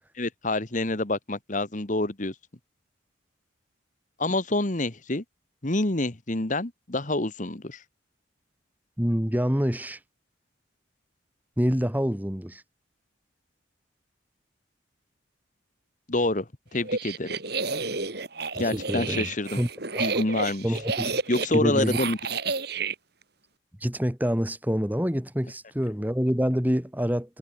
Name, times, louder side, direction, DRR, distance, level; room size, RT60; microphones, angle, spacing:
voice 1, 0.1-2.3 4.2-5.2 5.6-7.8 16.1-17.3 18.6-19.6 20.0-20.8 21.3-22.2, left 2 dB, 40° left, 1.5 m, -27 dB
voice 2, 9.0-10.0 11.6-12.6 18.6-19.3 19.6-19.7 19.9-20.1 20.6-21.1 21.5-22.0 23.8-27.4, equal, 10° right, 1.8 m, -26 dB
sound 1, 16.8-23.0, right 4 dB, 55° right, 4.2 m, -30 dB
head